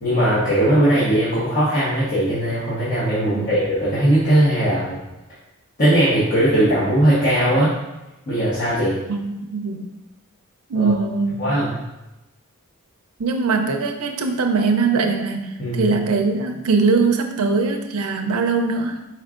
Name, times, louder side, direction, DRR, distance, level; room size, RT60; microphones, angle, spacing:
voice 1, 0.0-5.0 5.8-7.7 8.3-9.0 10.7-10.9 11.4-11.7 15.6-15.9, right 1 dB, 40° left, -13 dB, 1.3 m, -19 dB
voice 2, 9.1-9.9 10.7-11.5 13.2-19.1, right 4 dB, 80° right, 5 dB, 0.5 m, -21 dB
4.6 x 4.4 x 2.5 m, 0.98 s
head